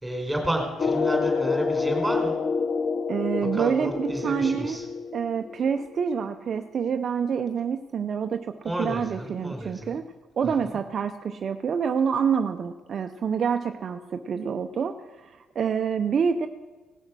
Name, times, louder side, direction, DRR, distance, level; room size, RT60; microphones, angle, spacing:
voice 1, 0.0-2.3 3.5-4.8 8.6-10.0 10.7-10.8, right 1 dB, 5° right, 2 dB, 4.0 m, -31 dB
sound 1, 0.8-6.3, left 5 dB, 45° left, 0.9 m, -28 dB
voice 2, 3.1-4.8 5.1-10.1 10.4-16.5, right 6 dB, 55° right, 6 dB, 0.6 m, -27 dB
17.5 x 6.5 x 6.2 m, 1.3 s
cardioid pair, 90°, 0 cm